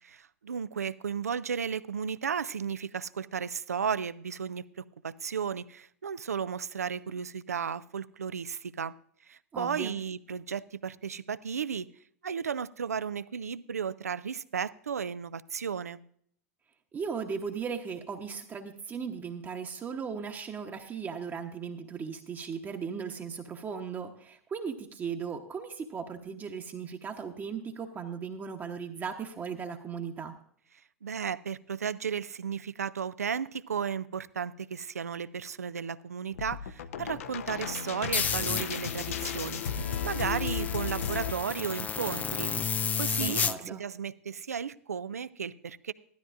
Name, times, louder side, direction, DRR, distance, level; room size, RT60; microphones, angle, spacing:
voice 1, 0.0-8.9 9.2-11.9 12.2-16.0 31.0-39.6 40.0-42.5 43.0-45.9, right 7 dB, 85° right, 16 dB, 0.4 m, -34 dB
voice 2, 9.5-10.0 16.9-30.3 43.2-43.8, right 6 dB, 25° right, 3 dB, 0.9 m, -37 dB
sound 1, 36.3-41.3, left 7 dB, 65° left, 0.6 m, -35 dB
sound 2, 38.1-43.6, left 6 dB, 20° left, 0.4 m, -32 dB
15.0 x 12.5 x 2.5 m, 0.63 s
hypercardioid pair, 95°, 8 cm